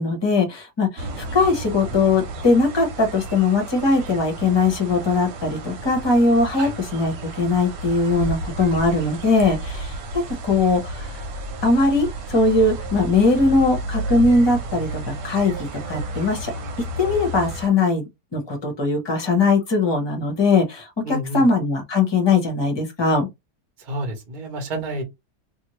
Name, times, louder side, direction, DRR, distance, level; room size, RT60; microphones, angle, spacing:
voice 1, 0.0-10.0 10.4-11.1 11.6-16.5 17.0-18.0 18.3-23.3, left 3 dB, 20° left, 0.8 m, -20 dB
sound 1, 1.0-17.7, right 1 dB, 85° right, 1.4 m, -32 dB
voice 2, 21.0-21.5 23.8-25.0, right 1 dB, 35° right, 1.0 m, -29 dB
2.7 x 2.7 x 3.1 m
omnidirectional pair, 1.8 m